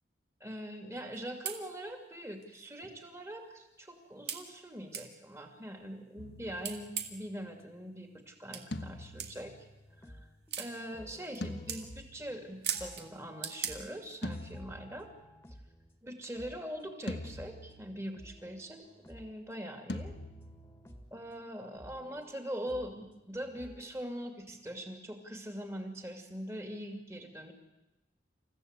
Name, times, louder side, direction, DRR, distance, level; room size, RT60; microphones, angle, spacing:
voice 1, 0.4-9.5 10.1-10.2 10.6-15.1 16.0-20.1 21.1-27.5, equal, 15° right, 5 dB, 2.4 m, -42 dB
sound 1, 1.1-1.2 1.5-1.6 2.4-2.5 3.0-3.1 4.3-4.4 4.9-5.1 6.6-7.3 8.5-8.6 9.2-9.3 10.5-10.7 11.2-11.4 11.7-11.8 12.6-13.1 13.4-13.7, right 8 dB, 70° right, 2.1 m, -36 dB
sound 2, 6.2-7.5 8.7-10.4 11.4-12.7 14.2-15.6 17.1-18.3 19.9-21.3, left 1 dB, 75° left, 1.3 m, -44 dB
sound 3, 9.9-16.0 16.3-17.8 18.1-19.4 19.9-21.2 21.7-23.9, equal, 15° left, 1.7 m, -55 dB
28.5 x 15.0 x 8.2 m, 1.0 s
head